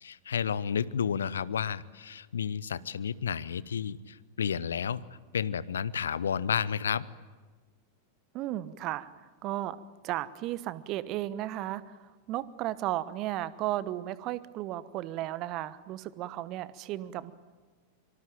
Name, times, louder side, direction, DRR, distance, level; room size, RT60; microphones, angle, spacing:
voice 1, 0.0-5.0 5.3-7.1, left 7 dB, 70° left, 19 dB, 0.8 m, -31 dB
voice 2, 8.3-9.1 9.4-9.8 10.0-12.0 12.3-17.3, right 14 dB, 40° right, 16 dB, 1.1 m, -34 dB
25.0 x 25.0 x 9.0 m, 1.4 s
figure-of-eight pair, 90°, 0 cm